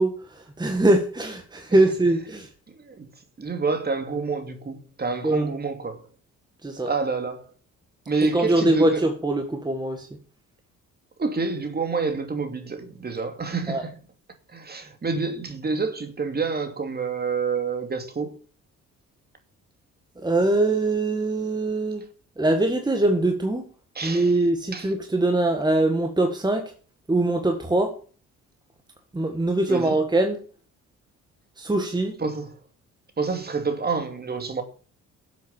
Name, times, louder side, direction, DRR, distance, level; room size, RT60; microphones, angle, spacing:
voice 1, 0.0-2.5 5.2-5.5 6.6-6.9 8.3-10.1 13.7-13.8 20.2-22.0 22.4-23.7 24.0-26.7 27.1-27.9 29.1-30.4 31.6-32.2, right 2 dB, 15° right, 1.7 m, -22 dB
voice 2, 2.7-3.1 3.4-6.1 6.9-7.5 8.1-9.0 11.2-14.0 14.5-18.3 23.9-24.3 24.7-24.9 29.7-30.0 32.2-32.6 33.2-34.6, right 4 dB, 30° right, 2.7 m, -28 dB
13.0 x 7.7 x 7.3 m
cardioid pair, 90°, 30 cm